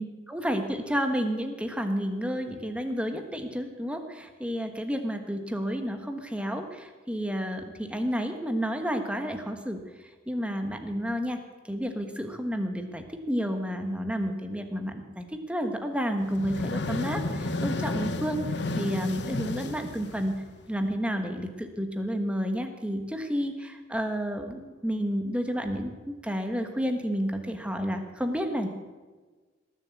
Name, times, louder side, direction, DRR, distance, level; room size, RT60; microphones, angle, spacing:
voice 1, 0.3-9.8 10.3-11.4 11.7-18.4 18.8-20.3 20.7-28.7, equal, 5° right, 6 dB, 1.3 m, -30 dB
sound 1, 16.2-20.8, left 2 dB, 65° left, 1.0 m, -32 dB
19.0 x 7.5 x 8.4 m, 1.4 s
head